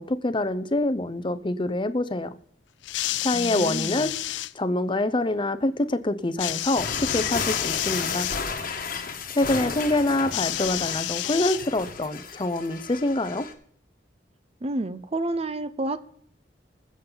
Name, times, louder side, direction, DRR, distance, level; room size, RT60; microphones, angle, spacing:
voice 1, 0.0-2.4 3.2-8.3 9.3-13.5, left 2 dB, 30° left, 12 dB, 0.7 m, -26 dB
sound 1, 2.8-4.5 6.4-8.4 10.3-12.0 13.0-13.1, left 16 dB, 80° left, 0.4 m, -30 dB
voice 2, 3.3-4.1 14.6-16.0, right 2 dB, 35° right, 13 dB, 0.7 m, -30 dB
sound 2, 6.7-13.5, left 5 dB, 55° left, 1.4 m, -33 dB
21.0 x 7.4 x 4.0 m, 0.63 s
head